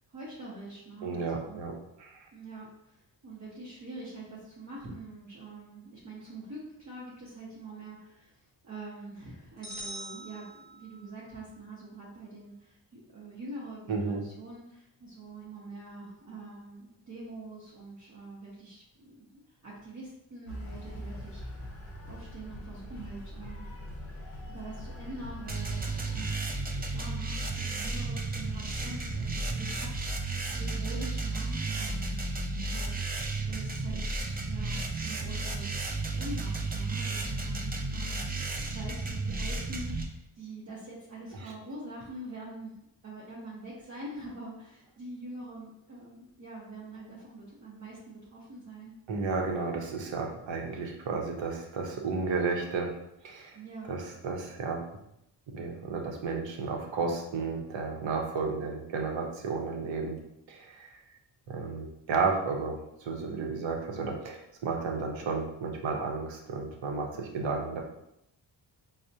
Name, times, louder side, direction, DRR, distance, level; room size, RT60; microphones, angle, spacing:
voice 1, 0.1-1.6 2.3-21.6 22.0-23.6 24.5-42.7 43.0-48.9 53.5-53.9, right 2 dB, 40° right, -6 dB, 0.7 m, -45 dB
voice 2, 1.0-1.7 2.0-2.3 13.9-14.2 49.1-52.9 53.2-53.6 53.9-54.8 55.5-60.2 60.5-60.9 61.5-67.8, right 4 dB, 75° right, 1 dB, 0.8 m, -32 dB
sound 1, 9.6-11.2, right 1 dB, ahead, 1.0 m, -43 dB
sound 2, 20.5-26.3, equal, 30° left, 0.6 m, -42 dB
sound 3, 25.5-40.1, right 3 dB, 25° right, 0.3 m, -33 dB
4.7 x 2.1 x 2.7 m, 0.81 s
wide cardioid pair, 135°, 45 cm